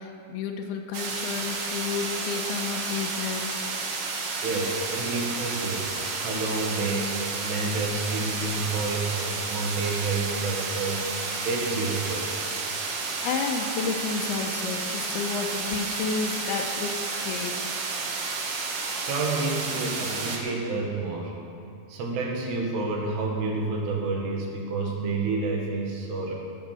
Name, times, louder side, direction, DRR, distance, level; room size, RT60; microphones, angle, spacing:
voice 1, 0.0-3.6 13.2-17.8, left 5 dB, 80° left, 4 dB, 2.6 m, -31 dB
sound 1, 0.9-20.4, right 4 dB, 60° right, 1.9 m, -31 dB
voice 2, 4.4-12.3 19.0-21.4 21.9-26.3, right 3 dB, 80° right, -1 dB, 3.9 m, -29 dB
18.5 x 6.5 x 6.6 m, 2.5 s
omnidirectional pair, 4.8 m